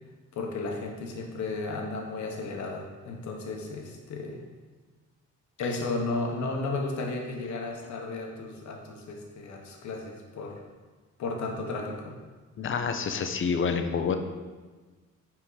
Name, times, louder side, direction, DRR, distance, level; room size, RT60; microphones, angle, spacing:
voice 1, 0.3-4.4 5.6-10.6 11.2-12.2, left 3 dB, 70° left, 1 dB, 1.1 m, -34 dB
voice 2, 12.6-14.2, left 6 dB, 45° left, 7 dB, 0.6 m, -28 dB
6.0 x 4.5 x 3.9 m, 1.4 s
cardioid pair, 90°, 30 cm